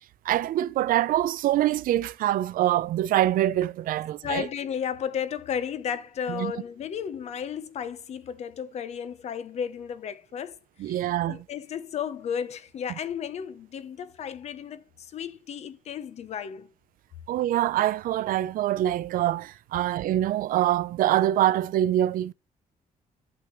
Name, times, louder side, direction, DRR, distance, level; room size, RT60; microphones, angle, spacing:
voice 1, 0.2-4.5 6.3-6.5 10.8-11.4 17.3-22.3, right 13 dB, 75° right, 0.6 m, -24 dB
voice 2, 4.2-10.6 10.9-16.7, left 8 dB, 50° left, 0.9 m, -33 dB
11.5 x 8.4 x 3.2 m
cardioid pair, 180°, 15 cm